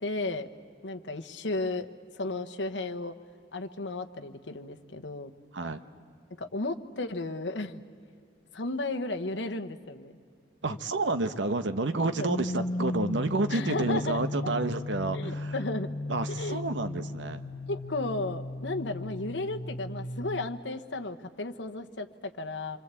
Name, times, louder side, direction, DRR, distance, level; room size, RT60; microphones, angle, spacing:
voice 1, 0.0-0.5 0.8-1.9 2.2-3.1 3.5-5.3 6.4-7.8 8.5-10.2 12.2-12.3 13.5-14.2 15.1-15.9 16.4-16.6 17.7-22.8, left 2 dB, 75° left, 6 dB, 1.1 m, -34 dB
voice 2, 10.6-15.5 16.1-17.4, right 2 dB, 80° right, 9 dB, 1.0 m, -30 dB
sound 1, 12.3-20.5, left 2 dB, 50° left, 0.9 m, -36 dB
27.0 x 24.5 x 8.3 m, 2.3 s
head